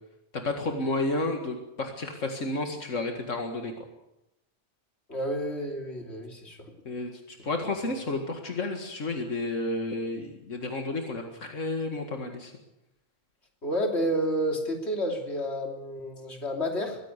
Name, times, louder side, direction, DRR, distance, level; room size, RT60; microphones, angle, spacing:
voice 1, 0.3-3.7 6.9-12.5, left 2 dB, 90° left, 4 dB, 2.3 m, -31 dB
voice 2, 5.1-6.7 13.6-17.0, equal, 60° left, 2 dB, 3.4 m, -30 dB
22.5 x 15.5 x 8.2 m, 0.91 s
omnidirectional pair, 1.3 m